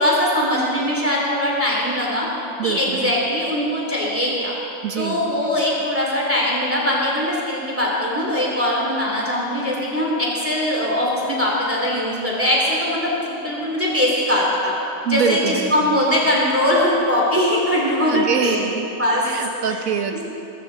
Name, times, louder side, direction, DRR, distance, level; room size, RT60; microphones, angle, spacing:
voice 1, 0.0-2.3 2.6-4.6 5.0-13.1 13.4-14.7 15.1-18.6 19.0-19.2, left 1 dB, 10° right, -4 dB, 2.7 m, -21 dB
voice 2, 2.6-3.1 4.8-5.2 15.0-16.0 18.1-18.9 19.2-20.2, right 6 dB, 70° right, 5 dB, 1.5 m, -24 dB
20.0 x 16.0 x 3.9 m, 2.9 s
omnidirectional pair, 1.5 m